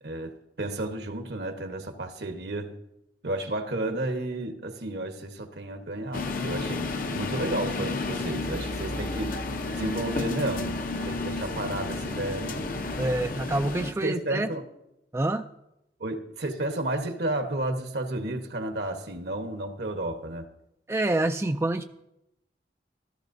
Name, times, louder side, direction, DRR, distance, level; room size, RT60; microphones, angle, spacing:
voice 1, 0.0-2.7 3.2-9.4 9.7-12.7 14.0-14.6 16.0-20.5, right 1 dB, 65° right, 1.2 m, -32 dB
sound 1, 6.1-13.9, left 3 dB, 50° left, 0.7 m, -31 dB
voice 2, 13.0-14.5 15.1-15.5 20.9-21.8, right 2 dB, 15° right, 0.3 m, -27 dB
15.5 x 13.5 x 2.7 m
head